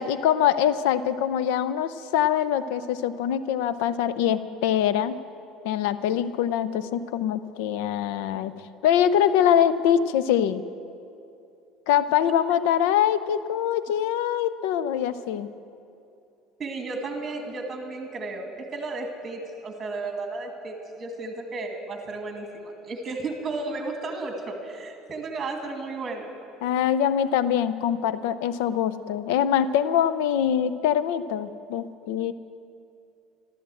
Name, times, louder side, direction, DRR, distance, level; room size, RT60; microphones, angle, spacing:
voice 1, 0.0-5.2 5.6-8.5 8.8-10.6 11.9-15.5 26.6-32.3, left 9 dB, 85° left, 14 dB, 0.5 m, -23 dB
voice 2, 16.6-26.3, right 3 dB, 25° right, 3 dB, 2.2 m, -34 dB
13.5 x 13.0 x 7.7 m, 2.6 s
cardioid pair, 140°, 0 cm